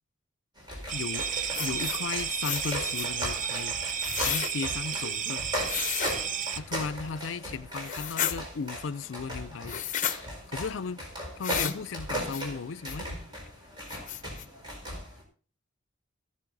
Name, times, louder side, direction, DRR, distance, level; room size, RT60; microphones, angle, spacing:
sound 1, 0.6-15.2, equal, 25° right, 4.6 m, -38 dB
voice 1, 0.9-1.3 1.6-3.7 4.2-5.5 6.6-9.8 10.5-11.1 11.4-13.1, left 5 dB, 70° left, 0.5 m, -35 dB
sound 2, 0.9-6.6, right 8 dB, 40° right, 0.6 m, -32 dB
sound 3, 1.5-2.0 2.4-3.1 4.0-4.5 5.6-6.2 7.8-8.4 9.7-10.2 11.4-11.8 12.3-12.4 12.8-13.0 13.5-13.6 13.9-14.4, left 10 dB, 40° left, 0.9 m, -32 dB
14.5 x 10.5 x 4.0 m
head